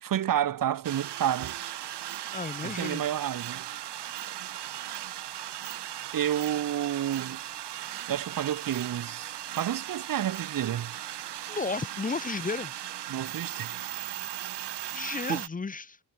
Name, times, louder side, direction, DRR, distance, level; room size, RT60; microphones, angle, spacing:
voice 1, 0.0-1.6 2.6-3.7 6.1-7.4 8.1-10.9 13.1-13.8 15.0-15.4, right 10 dB, 55° right, 1.4 m, -30 dB
sound 1, 0.8-15.5, right 12 dB, 85° right, 3.4 m, -38 dB
voice 2, 2.3-3.1 11.5-12.7 14.9-16.0, left 4 dB, 20° left, 1.2 m, -33 dB
wide cardioid pair, 175°, 40 cm